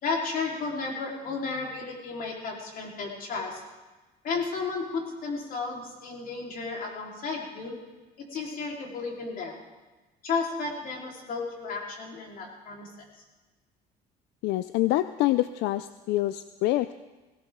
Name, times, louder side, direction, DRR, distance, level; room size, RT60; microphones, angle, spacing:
voice 1, 0.0-3.6 4.2-7.8 8.3-9.6 10.2-12.9, left 4 dB, 55° left, -1 dB, 3.9 m, -33 dB
voice 2, 14.4-16.9, left 16 dB, 85° left, 13 dB, 0.5 m, -26 dB
17.5 x 17.0 x 3.7 m, 1.2 s
cardioid pair, 110°, 17 cm